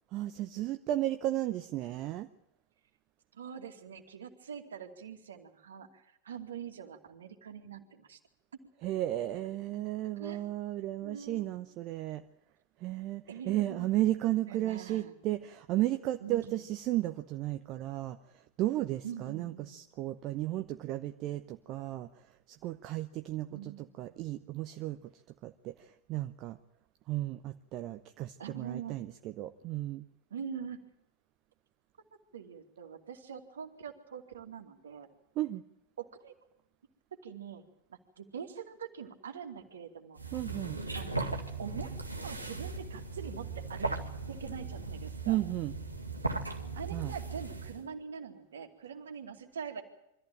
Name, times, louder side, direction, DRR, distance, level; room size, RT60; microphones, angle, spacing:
voice 1, 0.1-2.3 8.8-12.2 12.8-18.2 18.6-22.1 22.5-25.0 25.4-26.6 27.1-30.0 35.4-35.6 40.3-40.8 45.3-45.7 46.9-47.1, right 15 dB, 40° right, 8 dB, 0.9 m, -34 dB
voice 2, 3.3-8.2 10.2-10.4 11.0-11.5 13.3-14.1 14.5-15.1 16.2-16.6 19.0-19.9 23.5-24.2 28.4-29.0 30.3-30.8 32.3-35.1 36.0-36.3 37.1-37.6 37.9-40.3 40.9-41.2 41.6-41.9 42.2-44.0 44.3-45.4 46.7-49.8, right 7 dB, 65° right, 5 dB, 2.5 m, -44 dB
sound 1, 40.2-47.9, right 3 dB, 85° right, 2.1 m, -38 dB
24.0 x 14.5 x 9.0 m, 0.86 s
figure-of-eight pair, 90°, 0 cm